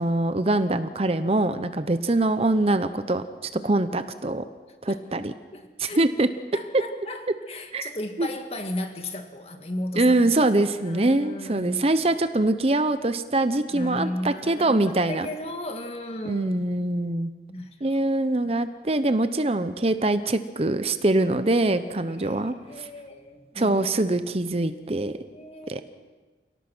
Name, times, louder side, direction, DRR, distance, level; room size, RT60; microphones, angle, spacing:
voice 1, 0.0-3.2 3.6-4.4 4.8-5.3 5.8-6.3 7.7-7.9 8.2-8.3 10.0-15.3 16.3-17.3 17.8-22.9 23.6-25.2 25.7-25.8, right 2 dB, 35° right, 11 dB, 0.8 m, -23 dB
voice 2, 4.9-5.2 5.5-6.0 6.5-10.4 10.8-11.9 13.7-16.6 17.5-18.0 22.1-22.4 22.7-24.1 25.3-25.8, left 1 dB, 35° left, 5 dB, 2.0 m, -35 dB
28.5 x 18.0 x 6.2 m, 1.3 s
head